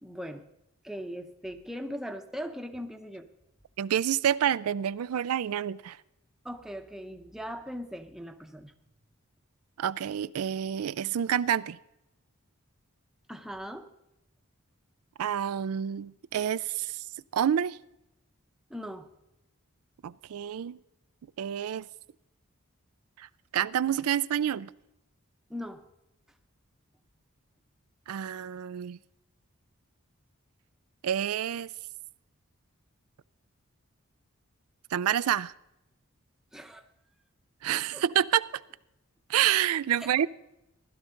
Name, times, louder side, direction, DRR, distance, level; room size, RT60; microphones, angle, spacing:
voice 1, 0.0-0.5 0.8-3.3 6.4-8.7 13.3-13.9 18.7-19.1 25.5-25.9 36.5-36.9 37.9-38.0 40.0-40.1, equal, ahead, 0.7 m, -39 dB
voice 2, 3.8-6.0 9.8-11.8 15.2-16.9 17.3-17.8 20.0-20.8 21.4-21.9 23.2-23.3 23.5-24.7 28.1-29.0 31.0-31.7 34.9-35.5 37.6-38.5 39.3-40.3, right 10 dB, 85° right, 0.4 m, -28 dB
15.5 x 12.0 x 3.8 m
head